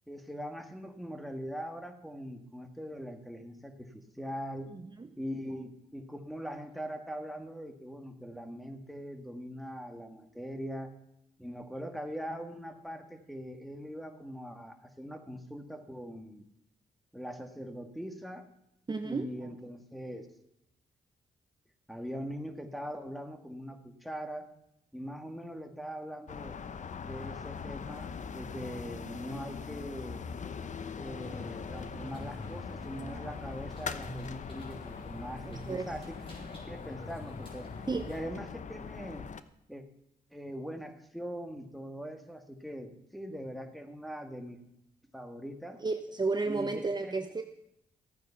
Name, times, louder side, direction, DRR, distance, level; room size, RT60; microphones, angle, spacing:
voice 1, 0.1-4.7 5.2-10.9 11.4-16.4 17.1-18.4 19.0-20.3 21.9-24.5 24.9-26.6 27.0-30.3 31.0-37.7 38.1-39.2 39.7-39.8 40.3-44.6 45.1-45.8 46.5-47.4, equal, ahead, 5 dB, 1.9 m, -42 dB
voice 2, 4.7-5.1 18.9-19.3 35.5-35.9 37.9-38.1 45.8-47.4, right 3 dB, 30° right, 7 dB, 0.8 m, -32 dB
sound 1, 26.3-39.4, left 6 dB, 50° left, 0.8 m, -42 dB
sound 2, 31.1-38.2, left 1 dB, 35° left, 5.2 m, -46 dB
14.5 x 9.1 x 5.7 m, 0.82 s
cardioid pair, 75°, 15 cm